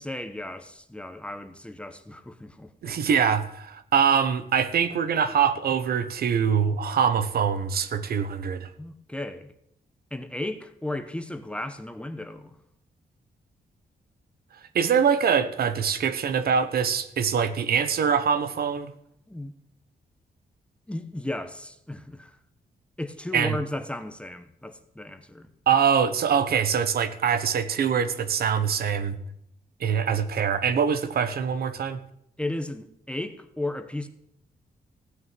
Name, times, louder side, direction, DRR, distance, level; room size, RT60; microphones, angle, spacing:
voice 1, 0.0-3.0 8.8-9.5 10.1-12.6 19.3-19.5 20.9-22.4 23.0-25.5 32.4-34.1, left 1 dB, 5° left, 0.9 m, -35 dB
voice 2, 2.8-8.7 14.7-18.9 23.3-23.6 25.7-29.2 29.8-32.0, right 7 dB, 70° right, 1.1 m, -24 dB
16.0 x 6.4 x 9.1 m
wide cardioid pair, 160°, 16 cm